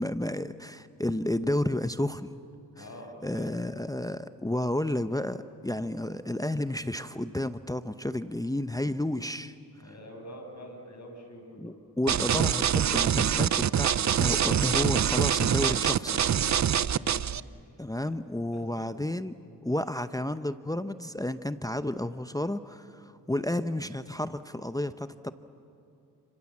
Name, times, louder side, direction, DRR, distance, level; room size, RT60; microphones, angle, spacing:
voice 1, 0.0-2.4 2.8-2.9 3.2-9.5 11.6-16.3 17.8-19.3 19.6-25.3, left 1 dB, 10° left, 11 dB, 0.8 m, -31 dB
voice 2, 2.8-3.6 9.8-11.7 17.0-17.3 18.1-18.2 18.5-18.8, equal, 45° left, 3 dB, 7.6 m, -46 dB
sound 1, 12.1-17.4, right 9 dB, 45° right, 0.6 m, -25 dB
29.0 x 27.0 x 7.4 m, 2.7 s
cardioid pair, 65°, 40 cm